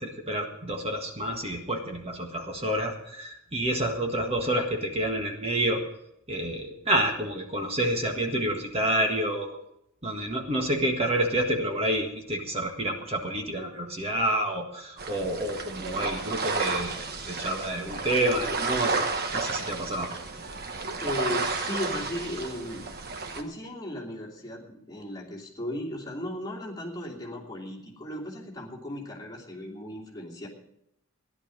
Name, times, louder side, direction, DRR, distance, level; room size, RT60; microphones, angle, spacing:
voice 1, 0.0-5.8 6.3-9.6 10.0-20.1, right 1 dB, 30° right, 3 dB, 1.6 m, -28 dB
sound 1, 15.0-23.4, right 4 dB, 50° right, 1.2 m, -32 dB
voice 2, 21.0-22.9 23.3-30.5, left 1 dB, 20° left, -3 dB, 2.8 m, -36 dB
15.5 x 11.0 x 5.2 m, 0.80 s
head